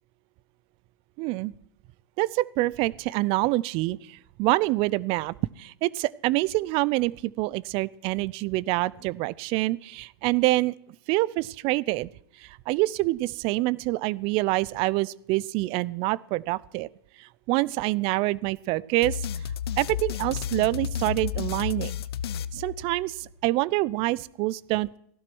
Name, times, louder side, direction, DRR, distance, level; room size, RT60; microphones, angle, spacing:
voice 1, 1.2-1.5 2.2-10.7 11.1-12.1 12.4-16.9 17.2-19.2 19.8-21.9 22.5-25.0, right 19 dB, 45° right, 22 dB, 0.6 m, -26 dB
sound 1, 19.0-23.3, left 9 dB, 75° left, 0.9 m, -32 dB
16.0 x 12.0 x 6.2 m, 0.69 s
hypercardioid pair, 110°, 13 cm